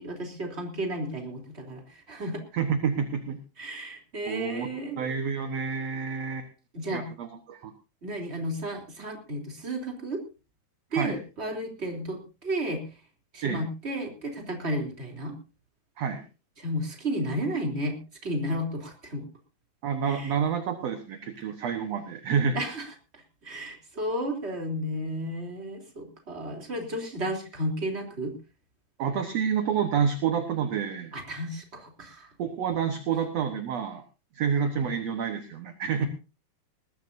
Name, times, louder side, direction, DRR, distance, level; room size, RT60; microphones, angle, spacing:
voice 1, 0.0-2.4 3.6-5.0 6.7-7.1 8.0-10.2 10.9-12.8 13.3-15.4 16.6-19.2 20.0-20.3 22.5-28.3 31.1-32.3 36.0-36.1, equal, 15° right, 3 dB, 3.1 m, -33 dB
voice 2, 2.5-3.4 4.3-4.7 5.0-6.5 6.9-7.7 10.9-11.2 13.4-13.6 16.0-16.2 19.8-22.6 29.0-31.1 32.4-34.0 34.4-36.1, right 7 dB, 60° right, 6 dB, 1.8 m, -28 dB
20.0 x 15.5 x 2.7 m, 0.32 s
omnidirectional pair, 4.5 m